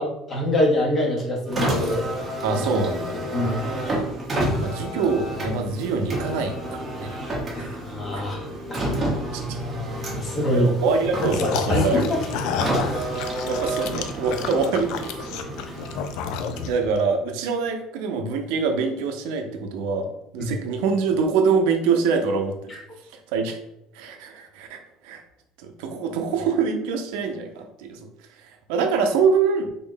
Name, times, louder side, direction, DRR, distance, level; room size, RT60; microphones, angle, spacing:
voice 1, 0.0-2.1 3.3-3.6 4.5-4.6 7.5-8.8 10.1-10.7 11.2-12.0 20.4-20.5, left 1 dB, 20° left, -2 dB, 0.8 m, -25 dB
Car, 1.4-16.9, right 1 dB, 15° right, 0.8 m, -30 dB
voice 2, 2.4-4.1 4.6-6.8 7.6-7.7 8.1-8.2 10.5-12.0 13.5-14.9 16.7-22.7 23.3-23.6 23.9-25.2 25.6-28.0 28.4-29.7, right 5 dB, 80° right, 4 dB, 0.5 m, -24 dB
sound 1, 11.2-17.0, left 7 dB, 55° left, 0.3 m, -30 dB
3.6 x 2.1 x 3.7 m, 0.84 s
cardioid pair, 175°, 0 cm